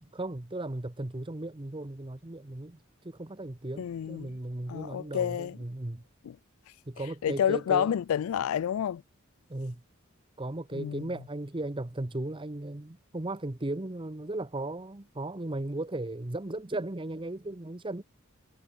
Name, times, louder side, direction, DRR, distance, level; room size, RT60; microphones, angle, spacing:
voice 1, 0.0-2.8 3.0-6.0 6.9-8.0 9.5-9.8 10.4-18.0, right 2 dB, 25° right, 0.9 m, -36 dB
voice 2, 3.8-4.3 4.7-5.6 6.2-6.4 7.2-9.0 10.7-11.1, left 9 dB, 85° left, 0.3 m, -29 dB
head